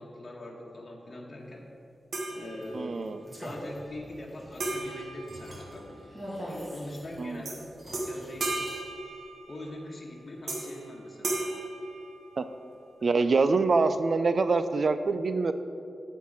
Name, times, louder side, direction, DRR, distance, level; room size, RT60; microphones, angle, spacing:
voice 1, 0.0-1.7 2.3-3.1 3.4-6.0 6.7-8.6 9.5-11.5 13.0-13.1, left 1 dB, 40° left, -2 dB, 1.2 m, -42 dB
sound 1, 2.1-3.1 4.6-6.2 7.4-7.6 7.9-9.8 10.5-10.9 11.2-12.7, right 2 dB, 75° right, 1.5 m, -35 dB
sound 2, 2.4-8.8, equal, 20° right, 2.1 m, -44 dB
voice 2, 2.7-3.2 7.2-7.4 12.4-12.5 13.0-15.5, right 4 dB, 55° right, 11 dB, 0.4 m, -25 dB
9.3 x 4.5 x 7.4 m, 2.6 s
wide cardioid pair, 110°, 0 cm